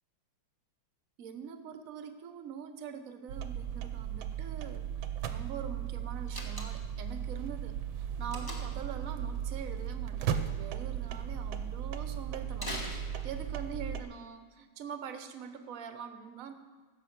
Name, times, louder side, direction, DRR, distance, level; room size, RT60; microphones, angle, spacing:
voice 1, 1.2-4.9 5.3-16.5, right 7 dB, 55° right, 8 dB, 1.0 m, -44 dB
sound 1, 3.3-14.0, right 9 dB, 80° right, 1.5 m, -36 dB
Slam, 6.3-7.0 8.3-8.9 12.5-13.6, equal, 15° left, 1.1 m, -42 dB
15.5 x 6.4 x 5.9 m, 1.5 s
omnidirectional pair, 2.3 m